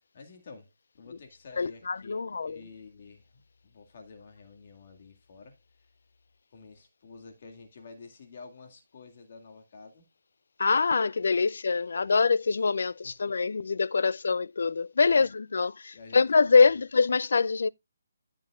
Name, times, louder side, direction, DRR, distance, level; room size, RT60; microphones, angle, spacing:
voice 1, 0.0-5.9 6.5-10.0 11.9-12.1 13.0-13.3 15.0-15.3 15.9-16.7, left 4 dB, 45° left, 2.0 m, -50 dB
voice 2, 1.6-2.6 10.6-17.7, left 4 dB, 70° left, 0.4 m, -24 dB
14.5 x 7.5 x 2.4 m
hypercardioid pair, 160°, 0 cm